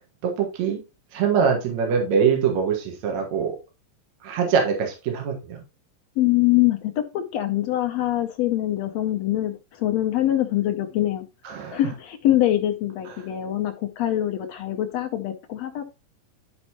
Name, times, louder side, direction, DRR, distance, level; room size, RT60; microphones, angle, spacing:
voice 1, 0.2-0.8 1.1-3.6 4.2-5.6 11.4-11.8, right 6 dB, 60° right, 2.6 m, -23 dB
voice 2, 6.2-11.3 11.7-15.8, left 14 dB, 85° left, 1.4 m, -24 dB
11.0 x 5.3 x 2.9 m
omnidirectional pair, 4.0 m